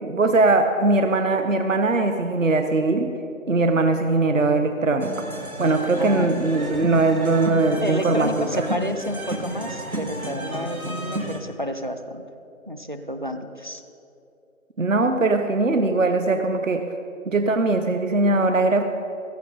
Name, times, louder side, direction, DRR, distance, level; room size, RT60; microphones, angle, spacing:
voice 1, 0.0-3.1 3.5-5.3 5.6-8.6 14.8-16.9 17.3-18.8, right 3 dB, 65° right, 7 dB, 0.9 m, -20 dB
sound 1, 5.0-11.4, equal, 90° right, 1.8 m, -32 dB
voice 2, 6.0-6.3 7.8-12.2 12.7-13.8, equal, 35° right, 8 dB, 0.6 m, -30 dB
15.0 x 14.5 x 3.9 m, 2.7 s
figure-of-eight pair, 165°, 41 cm